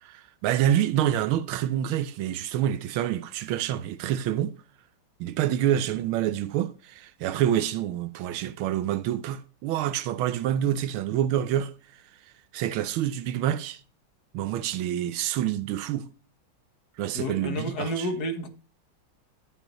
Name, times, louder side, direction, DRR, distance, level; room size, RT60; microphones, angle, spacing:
voice 1, 0.0-4.5 5.2-11.7 12.5-13.8 14.3-16.1 17.0-18.1, right 11 dB, 90° right, 1.5 m, -27 dB
voice 2, 17.1-18.5, left 1 dB, 55° left, 1.7 m, -30 dB
12.0 x 7.6 x 3.0 m
omnidirectional pair, 2.2 m